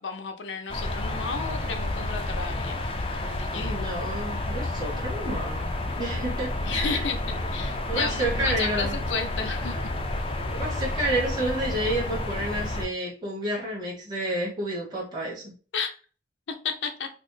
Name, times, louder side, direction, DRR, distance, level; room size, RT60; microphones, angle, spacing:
voice 1, 0.0-2.8 3.1-3.8 6.6-9.9 15.7-15.9 16.5-17.1, left 5 dB, 90° left, 6 dB, 0.6 m, -33 dB
sound 1, 0.7-12.9, left 2 dB, 30° left, 0.4 m, -30 dB
voice 2, 3.5-7.1 7.6-8.9 10.4-15.5, right 1 dB, 25° right, -6 dB, 1.2 m, -30 dB
4.1 x 2.0 x 3.2 m, 0.39 s
head